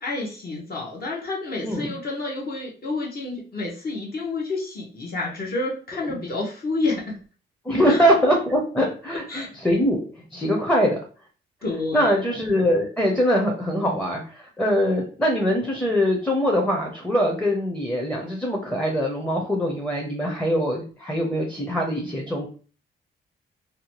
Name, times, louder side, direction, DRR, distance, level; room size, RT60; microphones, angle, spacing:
voice 1, 0.0-7.2 7.9-8.0 9.1-9.5 11.6-12.2, left 3 dB, 50° left, -2 dB, 0.9 m, -29 dB
voice 2, 1.6-1.9 6.0-6.2 7.7-10.0 10.3-11.0 11.9-22.5, equal, 5° left, -1 dB, 0.6 m, -23 dB
2.7 x 2.2 x 2.9 m, 0.39 s
cardioid pair, 95°, 21 cm